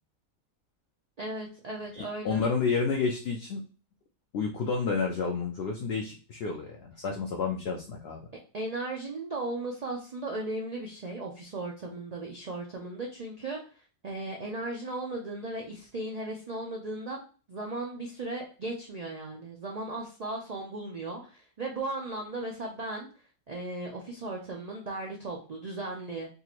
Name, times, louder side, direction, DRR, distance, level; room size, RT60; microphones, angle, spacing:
voice 1, 1.2-2.5 8.5-13.6 14.0-17.2 17.5-23.1 23.5-26.3, right 2 dB, 80° right, -1 dB, 0.3 m, -36 dB
voice 2, 1.9-3.6 4.3-8.3, left 5 dB, 65° left, 1 dB, 0.6 m, -30 dB
3.6 x 2.5 x 2.9 m, 0.37 s
omnidirectional pair, 1.5 m